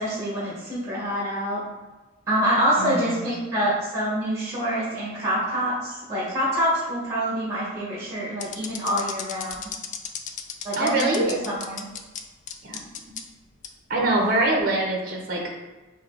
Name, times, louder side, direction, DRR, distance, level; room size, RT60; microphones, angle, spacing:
voice 1, 0.0-1.6 2.3-9.7 10.6-11.9, equal, 15° right, -6 dB, 1.3 m, -26 dB
voice 2, 2.8-3.2 10.8-11.4 12.6-13.1 13.9-15.4, right 2 dB, 45° right, -1 dB, 0.8 m, -24 dB
sound 1, 8.4-12.2 12.5-13.2 13.6-13.7 14.4-14.6, left 8 dB, 40° left, 0.3 m, -34 dB
4.8 x 2.7 x 3.8 m, 1.2 s
head